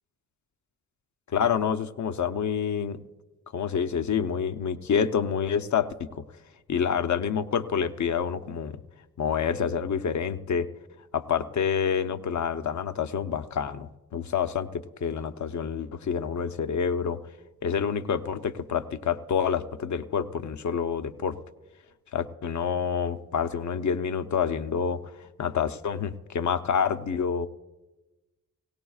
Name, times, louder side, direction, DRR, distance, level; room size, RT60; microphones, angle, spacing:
voice 1, 1.3-3.0 3.5-6.2 6.7-8.8 9.2-10.7 11.1-17.2 17.6-21.3 22.1-25.0 25.4-27.5, left 7 dB, 55° left, 10 dB, 0.7 m, -28 dB
18.0 x 17.5 x 2.4 m, 1.1 s
cardioid pair, 55°, 34 cm